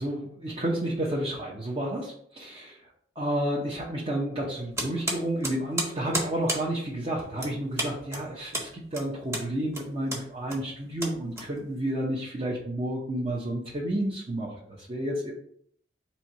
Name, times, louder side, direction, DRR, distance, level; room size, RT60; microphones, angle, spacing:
voice 1, 0.0-2.8 3.2-15.3, right 1 dB, 30° right, -5 dB, 0.8 m, -31 dB
sound 1, 4.7-11.9, right 1 dB, 15° right, 1.2 m, -34 dB
4.4 x 2.7 x 4.4 m, 0.65 s
head